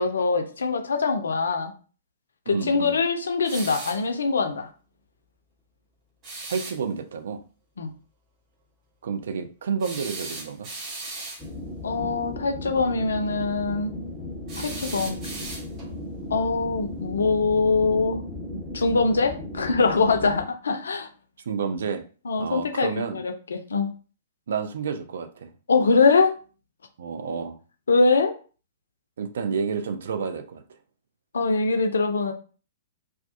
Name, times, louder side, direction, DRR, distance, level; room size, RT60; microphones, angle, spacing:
voice 1, 0.0-1.7 2.5-4.7 7.8-7.9 11.8-13.9 14.6-15.3 16.3-18.2 18.7-21.1 22.3-23.9 25.7-26.3 27.9-28.3 31.3-32.3, left 4 dB, 65° left, 6 dB, 0.4 m, -23 dB
voice 2, 2.5-3.0 6.5-7.4 9.0-10.7 21.4-22.0 22.4-23.2 24.5-25.5 27.0-27.6 29.2-30.6, right 6 dB, 60° right, 7 dB, 0.4 m, -30 dB
sound 1, 3.4-4.1 6.2-6.8 9.8-11.5 14.5-15.9, right 2 dB, 30° right, 0.8 m, -37 dB
sound 2, 11.4-20.5, left 1 dB, ahead, 1.0 m, -36 dB
2.3 x 2.2 x 2.5 m, 0.38 s
figure-of-eight pair, 110°, 0 cm